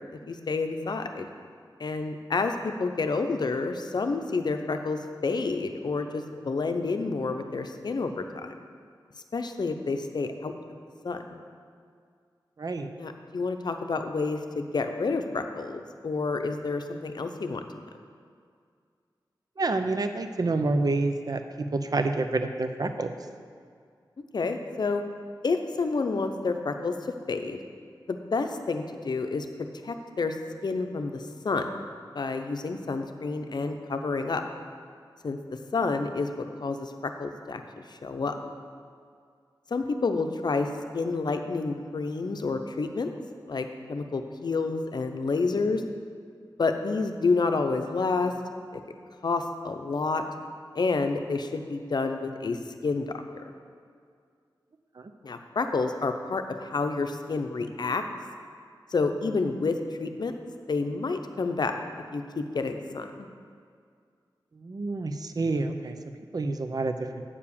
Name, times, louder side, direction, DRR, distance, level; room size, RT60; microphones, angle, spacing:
voice 1, 0.1-1.3 1.8-8.6 9.3-10.5 11.0-11.4 13.0-17.6 24.3-25.0 25.4-27.0 27.3-27.6 28.1-30.4 30.6-31.8 32.1-34.4 35.2-37.6 37.9-38.4 39.7-43.1 43.5-45.8 46.6-48.4 48.7-48.8 49.2-50.2 50.7-53.4 55.2-58.0 58.9-60.3 60.7-61.7 62.1-63.3, left 4 dB, 60° left, 6 dB, 0.6 m, -29 dB
voice 2, 12.6-12.9 19.6-23.1 55.0-55.1 64.6-66.0 66.3-66.9, right 3 dB, 50° right, 7 dB, 0.6 m, -28 dB
8.5 x 4.8 x 7.1 m, 2.2 s
wide cardioid pair, 85°, 8 cm